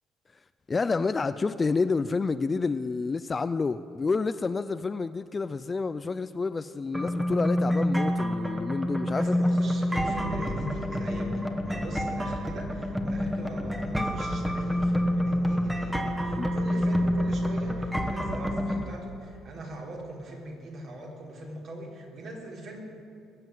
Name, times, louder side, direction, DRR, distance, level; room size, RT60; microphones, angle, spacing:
voice 1, 0.7-9.3 16.4-16.5, left 4 dB, 25° left, 0.3 m, -29 dB
sound 1, 6.9-18.8, equal, 5° right, 1.3 m, -28 dB
voice 2, 9.1-22.8, right 1 dB, 55° right, 3.6 m, -40 dB
20.5 x 7.7 x 9.3 m
cardioid pair, 135°, 0 cm